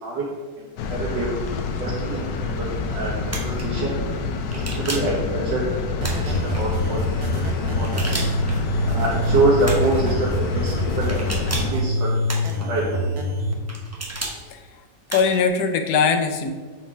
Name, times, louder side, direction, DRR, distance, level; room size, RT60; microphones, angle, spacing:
sound 1, 0.8-11.7, left 4 dB, 85° left, 1.3 m, -28 dB
voice 1, 0.9-1.3 1.8-2.3 2.5-3.1 3.4-4.0 4.7-5.8 6.1-7.0 7.3-7.4 7.8-8.2 8.9-11.2 11.5-12.4 12.7-13.0, right 2 dB, 80° right, -5 dB, 1.8 m, -25 dB
sound 2, 3.3-3.6 4.5-5.2 6.0-6.6 7.8-8.5 9.6-10.0 11.1-11.8 12.3-12.8 13.7-14.4 15.1-15.5, right 1 dB, 15° right, 0.6 m, -32 dB
sound 3, 6.0-13.5, equal, 60° right, 1.4 m, -25 dB
voice 2, 14.5-14.8 15.1-16.5, left 5 dB, 70° left, 6 dB, 1.1 m, -21 dB
6.2 x 4.3 x 4.8 m, 1.5 s
omnidirectional pair, 1.9 m